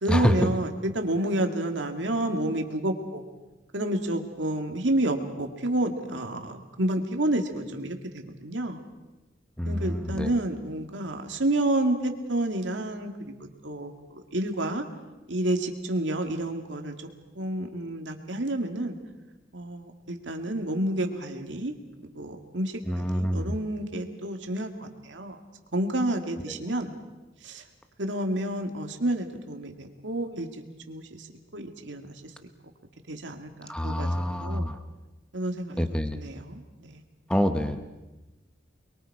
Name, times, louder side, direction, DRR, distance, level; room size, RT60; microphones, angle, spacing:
voice 1, 0.0-3.2 3.7-8.8 9.7-14.8 15.3-16.9 17.4-19.0 19.5-21.7 22.1-25.4 25.7-27.0 27.4-27.6 28.0-30.5 30.9-31.3 31.5-32.3 33.1-34.1 34.4-34.7 35.3-37.0, right 1 dB, 90° right, 4 dB, 2.2 m, -30 dB
voice 2, 9.6-10.3 22.9-23.5 33.7-34.8 35.8-36.2 37.3-37.8, equal, 5° left, 7 dB, 1.0 m, -26 dB
28.5 x 22.5 x 4.9 m, 1.1 s
head